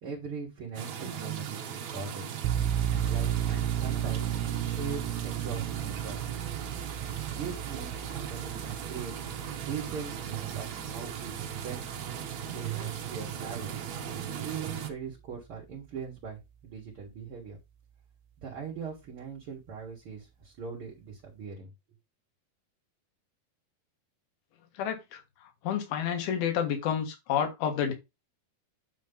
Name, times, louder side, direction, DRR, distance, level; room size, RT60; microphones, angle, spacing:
voice 1, 0.0-2.2 2.9-4.2 4.6-6.3 7.3-9.1 9.6-11.9 12.4-13.8 14.4-17.6 18.4-21.7, right 5 dB, 45° right, 1.9 m, -41 dB
sound 1, 0.7-14.9, right 8 dB, 70° right, 1.8 m, -38 dB
sound 2, 2.4-13.7, right 10 dB, 85° right, 2.6 m, -34 dB
voice 2, 24.8-25.2 25.6-27.9, left 8 dB, 70° left, 3.3 m, -29 dB
9.3 x 3.2 x 5.3 m
omnidirectional pair, 4.7 m